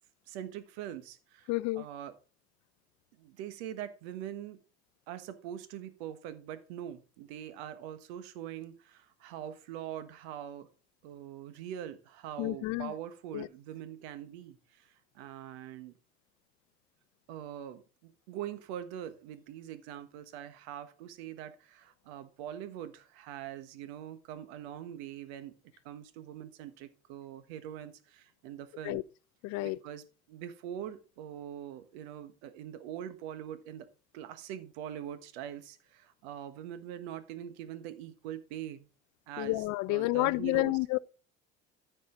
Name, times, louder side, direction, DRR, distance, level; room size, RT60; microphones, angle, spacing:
voice 1, 0.3-2.1 3.2-4.6 5.1-10.7 11.0-15.9 17.3-25.5 25.8-29.0 29.6-33.9 34.1-38.9 39.3-40.8, right 10 dB, 70° right, 1.4 m, -43 dB
voice 2, 1.5-1.9 12.4-12.9 13.3-13.5 28.8-29.0 29.4-29.8 39.4-41.0, left 21 dB, 60° left, 0.6 m, -30 dB
14.0 x 5.4 x 3.8 m
hypercardioid pair, 65°, 33 cm